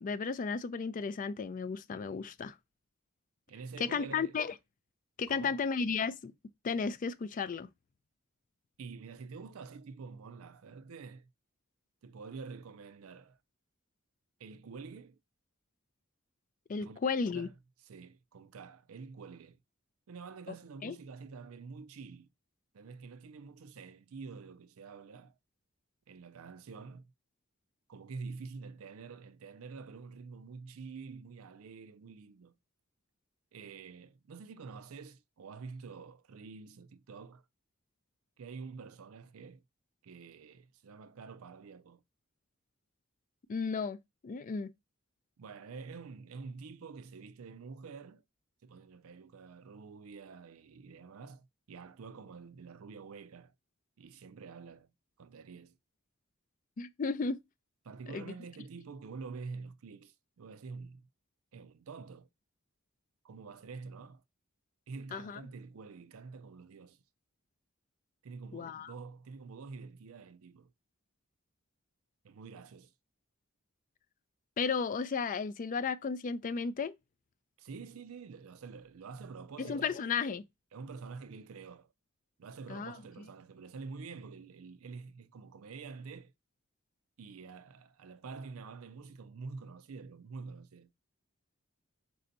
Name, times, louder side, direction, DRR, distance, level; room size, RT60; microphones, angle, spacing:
voice 1, 0.0-2.6 3.8-4.5 5.2-6.3 6.6-7.7 16.7-17.5 20.8-21.0 43.5-44.0 44.2-44.7 56.8-57.4 58.1-58.3 65.1-65.4 68.5-68.9 74.6-77.0 79.6-80.4 82.7-83.0, left 5 dB, 40° left, 0.4 m, -34 dB
voice 2, 3.5-4.3 5.3-5.6 8.8-11.3 12.0-13.4 14.4-15.2 16.8-17.0 17.3-17.5 17.9-19.6 20.1-22.3 22.7-25.4 26.1-27.1 27.9-32.6 33.5-37.5 38.4-39.6 40.0-42.0 45.4-48.2 48.6-53.5 54.0-54.9 55.2-55.8 57.8-61.1 61.5-62.3 63.2-64.2 64.9-67.0 68.2-70.7 72.2-72.9 77.6-80.0 80.7-81.9 82.4-86.3 87.2-90.9, right 4 dB, 90° right, 0.5 m, -47 dB
4.3 x 2.7 x 3.9 m
head